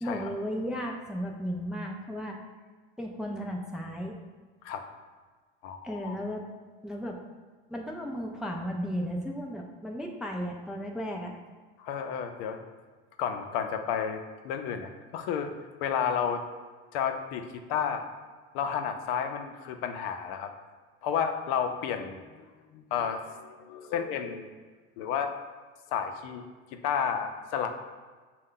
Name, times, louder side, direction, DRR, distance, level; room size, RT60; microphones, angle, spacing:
voice 1, 0.0-2.4 3.0-4.2 5.8-6.4 6.8-7.2 7.7-11.4, equal, ahead, 0 dB, 0.3 m, -34 dB
voice 2, 5.6-6.2 11.8-12.7 13.2-15.5 15.8-16.4 16.9-18.1 18.5-20.5 21.0-22.2 22.7-24.5 25.0-25.3 25.9-26.5 26.7-27.7, left 7 dB, 75° left, 6 dB, 0.5 m, -31 dB
5.3 x 2.2 x 3.7 m, 1.4 s
supercardioid pair, 110°, 31 cm